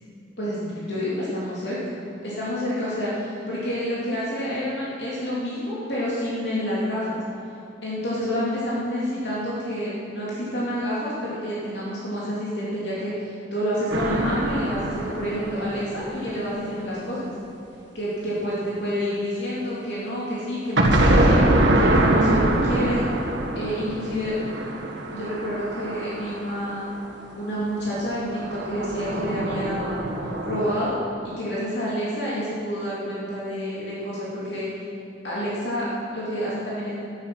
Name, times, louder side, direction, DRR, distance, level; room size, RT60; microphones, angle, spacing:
voice 1, 0.4-2.0 2.2-7.2 7.8-17.3 17.9-23.0 23.5-24.3 25.1-26.9 27.4-30.0 30.4-31.0 31.2-34.8 35.2-36.9, equal, 70° left, -8 dB, 2.9 m, -28 dB
sound 1, 13.9-16.7 20.8-27.0 28.3-30.7, right 1 dB, 90° right, 1.8 m, -23 dB
12.5 x 11.0 x 6.2 m, 2.6 s
head